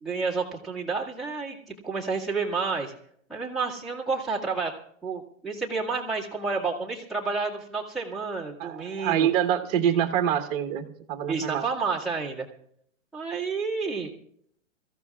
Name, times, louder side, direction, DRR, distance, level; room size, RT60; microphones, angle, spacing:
voice 1, 0.0-2.9 3.3-4.7 5.0-9.3 11.3-12.5 13.1-14.1, right 4 dB, ahead, -8 dB, 1.9 m, -30 dB
voice 2, 8.6-11.6, right 9 dB, 30° right, 4 dB, 1.3 m, -26 dB
24.5 x 14.5 x 2.4 m, 0.69 s
hypercardioid pair, 155°, 40 cm